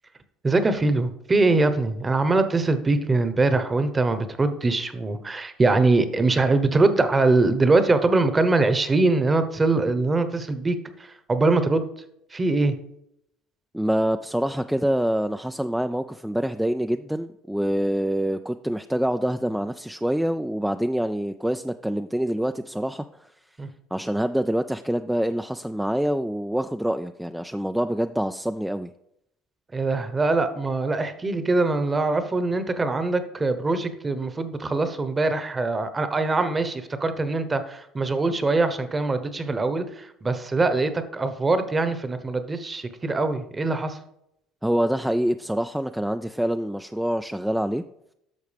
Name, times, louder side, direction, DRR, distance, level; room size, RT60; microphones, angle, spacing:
voice 1, 0.4-11.9 12.3-12.7 23.6-23.7 29.7-44.0, right 3 dB, 25° right, 10 dB, 1.0 m, -23 dB
voice 2, 13.7-23.3 23.9-28.9 44.6-47.8, equal, 5° right, 8 dB, 0.3 m, -26 dB
10.5 x 6.3 x 3.4 m, 0.79 s
supercardioid pair, 80°, 0 cm